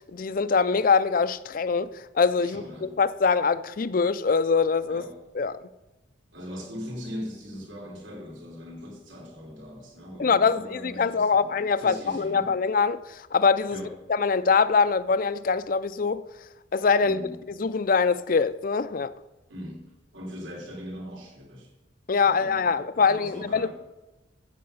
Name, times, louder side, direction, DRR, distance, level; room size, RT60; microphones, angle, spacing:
voice 1, 0.1-1.9 2.1-5.0 5.4-5.6 10.2-13.8 14.1-16.2 16.7-17.2 17.6-19.1 22.1-23.7, left 5 dB, 45° left, 0.4 m, -23 dB
voice 2, 2.4-3.0 4.9-5.2 6.3-11.5 11.8-12.5 13.7-14.0 17.0-17.4 19.5-21.7 22.2-23.7, equal, 85° right, 3.3 m, -40 dB
14.0 x 7.6 x 5.7 m
head